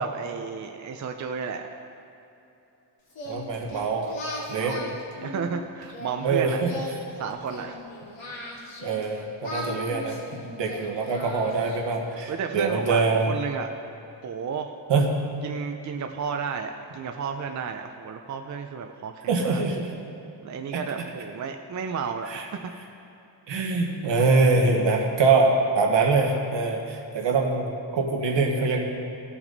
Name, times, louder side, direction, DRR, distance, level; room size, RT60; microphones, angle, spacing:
voice 1, 0.0-1.6 4.6-6.8 7.2-7.8 12.3-13.7 14.2-14.7 15.4-19.6 20.4-22.6, right 6 dB, 45° right, 5 dB, 0.5 m, -32 dB
Singing, 3.1-6.1 6.6-9.0 9.4-12.0, left 1 dB, 80° left, 2.5 m, -38 dB
voice 2, 3.3-4.1 4.5-4.8 6.2-6.7 8.8-13.3 14.9-15.1 19.3-19.9 22.3-22.4 23.5-28.9, right 3 dB, 75° right, 1 dB, 1.5 m, -24 dB
17.5 x 6.0 x 4.0 m, 2.9 s
wide cardioid pair, 165°, 44 cm